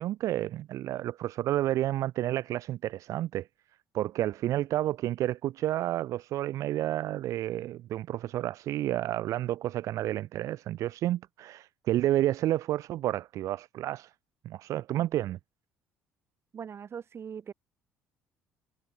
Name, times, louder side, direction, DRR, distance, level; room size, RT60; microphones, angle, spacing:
voice 1, 0.0-3.5 3.9-14.1 14.4-15.4, right 14 dB, 60° right, 1.3 m, -30 dB
voice 2, 16.5-17.5, right 7 dB, 45° right, 6.1 m, -40 dB
hypercardioid pair, 55°, 6 cm